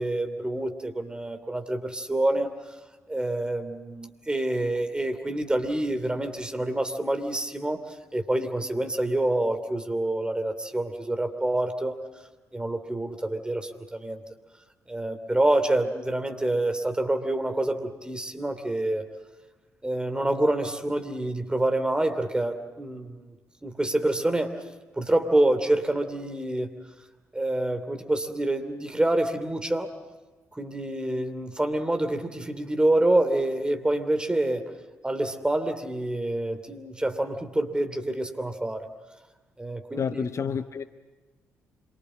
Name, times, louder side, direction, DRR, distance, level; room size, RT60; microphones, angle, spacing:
voice 1, 0.0-2.5 3.1-12.0 12.5-14.2 14.9-19.0 19.8-23.4 23.6-24.5 25.0-26.7 27.3-29.9 30.5-34.6 35.0-38.9 39.6-40.3, right 1 dB, 10° right, 7 dB, 2.8 m, -27 dB
voice 2, 40.0-40.8, left 6 dB, 40° left, 11 dB, 0.8 m, -29 dB
26.5 x 24.0 x 7.6 m, 1.2 s
figure-of-eight pair, 40°, 7 cm